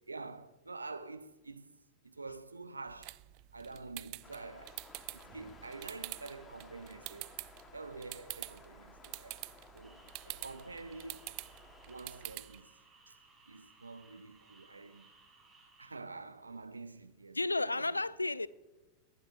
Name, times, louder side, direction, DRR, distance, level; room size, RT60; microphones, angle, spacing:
voice 1, 0.1-3.2 3.5-4.8 5.1-7.3 7.7-9.4 9.7-10.0 10.4-11.2 11.9-12.8 13.1-13.2 13.5-15.1 15.8-17.4 17.7-17.9, right 3 dB, 80° right, 0.7 m, -47 dB
sound 1, 2.9-12.6, right 24 dB, 45° right, 0.3 m, -47 dB
sound 2, 4.2-12.4, left 4 dB, 20° left, 1.3 m, -57 dB
sound 3, 9.8-15.9, right 3 dB, 15° right, 4.8 m, -63 dB
voice 2, 17.3-18.5, left 2 dB, 80° left, 0.4 m, -33 dB
23.5 x 11.5 x 2.5 m
figure-of-eight pair, 90°, 0 cm